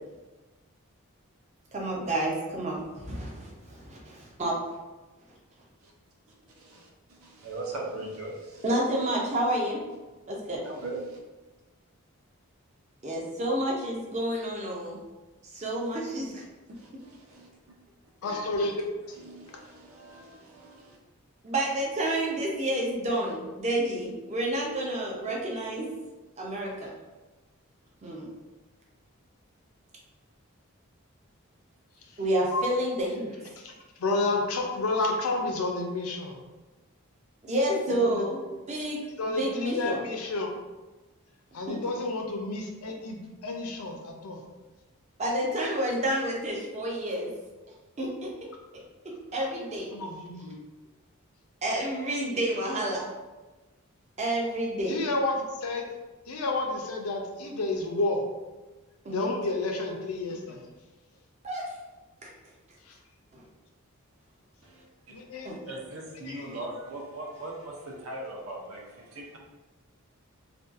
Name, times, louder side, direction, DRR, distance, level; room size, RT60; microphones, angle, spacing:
voice 1, 1.7-4.6 8.6-9.8 10.3-10.6 13.0-15.0 15.4-16.4 21.4-25.9 26.4-26.9 28.0-28.3 32.2-33.4 37.4-38.4 38.7-39.0 39.3-40.0 41.7-41.8 45.2-47.3 48.0-48.3 49.3-49.9 51.6-53.1 54.2-55.0 59.0-59.3 61.4-61.7 62.2-62.3 63.3-63.4 65.4-65.6, right 1 dB, 30° right, -2 dB, 0.5 m, -29 dB
voice 2, 6.5-8.6 10.6-11.2 16.7-17.5 18.2-18.4 19.1-21.0 64.6-64.8 65.7-69.4, right 2 dB, 75° right, -1 dB, 0.6 m, -40 dB
voice 3, 18.2-18.7 32.5-32.6 33.6-33.7 34.0-36.4 37.9-38.3 39.2-40.5 41.5-44.4 49.9-50.6 54.8-55.8 56.3-58.2 59.1-60.6 62.9-63.0 65.1-65.5, left 2 dB, 80° left, 2 dB, 0.5 m, -30 dB
2.6 x 2.2 x 2.4 m, 1.1 s
head